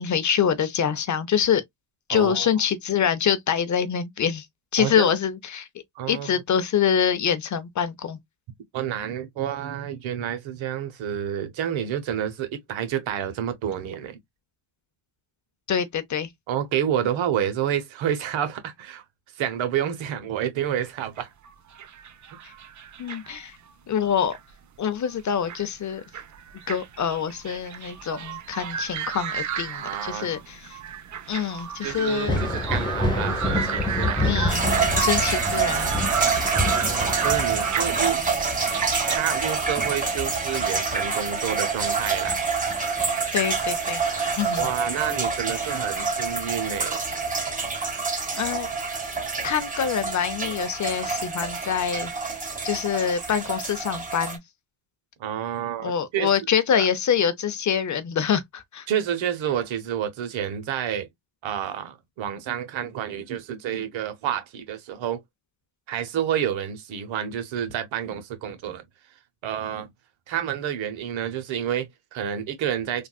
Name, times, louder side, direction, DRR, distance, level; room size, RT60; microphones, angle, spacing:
voice 1, 0.0-1.6 2.1-4.5 4.7-5.7 6.1-8.2 15.7-16.3 22.4-22.5 23.0-23.6 23.9-24.4 24.8-26.0 26.7-30.8 31.3-32.5 34.2-34.6 35.0-35.9 43.3-44.0 44.3-44.7 48.3-48.7 49.4-52.1 52.6-54.4 55.8-58.9, left 8 dB, 40° left, 0.6 m, -25 dB
voice 2, 2.1-2.5 4.8-5.1 6.0-6.4 8.7-14.2 16.5-19.0 19.4-21.3 22.4-22.5 29.7-30.3 31.8-34.5 36.5-38.2 39.1-42.4 44.6-47.0 55.2-56.3 56.7-56.9 58.9-61.1 61.4-65.2 65.9-68.8 69.4-69.9 70.3-73.1, right 9 dB, 70° right, 1.1 m, -29 dB
sound 1, 21.2-23.5 24.0-24.5 25.1-25.7 25.9-39.2, right 8 dB, 40° right, 0.7 m, -33 dB
Thunder, 32.1-41.4 41.8-43.0 44.6-44.7 45.5-45.6, left 2 dB, 10° left, 1.1 m, -29 dB
sound 2, 34.5-54.4, right 4 dB, 15° right, 1.3 m, -27 dB
3.5 x 2.4 x 2.3 m
cardioid pair, 80°, 48 cm